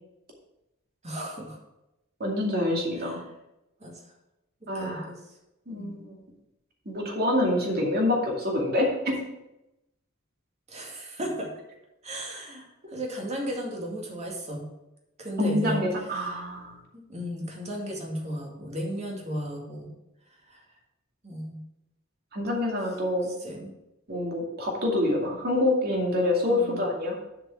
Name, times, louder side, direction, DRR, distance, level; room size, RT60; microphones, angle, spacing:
voice 1, 1.0-1.6 3.0-3.2 3.8-3.9 4.7-5.2 5.7-5.9 10.7-11.5 12.0-14.6 15.2-15.8 16.1-16.3 16.9-19.9 20.5-20.6 21.2-21.6 23.3-23.7 26.5-26.9, equal, 35° right, 0 dB, 2.2 m, -35 dB
voice 2, 2.2-3.2 4.7-5.1 5.7-6.2 6.9-9.2 15.4-16.7 22.3-23.3 24.1-27.2, left 1 dB, 50° right, -1 dB, 2.4 m, -26 dB
7.5 x 5.2 x 7.1 m, 0.91 s
head